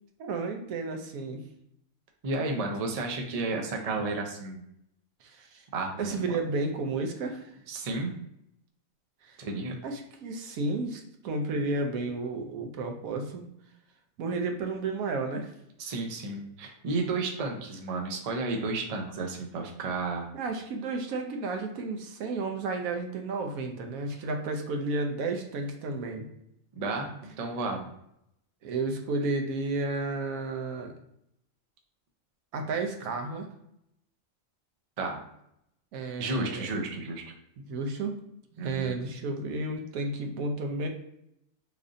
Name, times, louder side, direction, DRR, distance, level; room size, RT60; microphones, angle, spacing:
voice 1, 0.2-1.4 5.2-5.6 6.0-7.5 9.2-9.4 9.8-13.5 14.2-15.5 20.3-26.3 28.6-30.9 32.5-33.5 35.9-36.7 37.6-38.2 38.6-40.9, right 3 dB, 90° right, 4 dB, 1.1 m, -32 dB
voice 2, 2.2-4.6 5.7-6.3 7.7-8.1 9.4-9.7 15.8-20.3 26.7-27.9 35.0-35.2 36.2-37.2 38.6-38.9, right 3 dB, 65° right, 2 dB, 0.3 m, -32 dB
3.2 x 2.5 x 3.7 m, 0.78 s
omnidirectional pair, 1.4 m